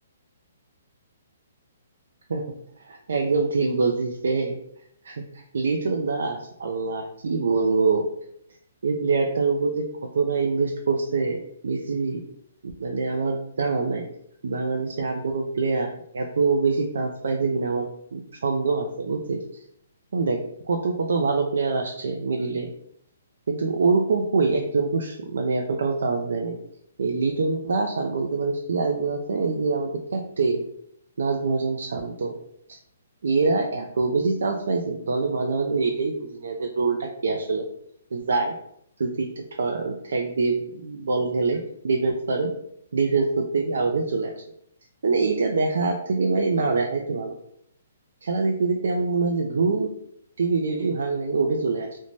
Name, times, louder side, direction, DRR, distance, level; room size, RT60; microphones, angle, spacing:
voice 1, 2.8-4.6 5.0-8.0 8.8-9.8 10.1-12.2 12.6-14.0 14.4-15.9 16.1-19.4 20.1-20.4 20.7-22.7 23.5-26.6 27.0-30.7 31.2-32.3 32.7-32.8 33.2-37.7 38.1-38.5 39.0-42.5 42.9-44.3 45.0-47.4 48.2-49.9 50.4-52.0, right 4 dB, 75° right, 2 dB, 0.3 m, -25 dB
2.6 x 2.1 x 3.1 m, 0.72 s
hypercardioid pair, 155°, 0 cm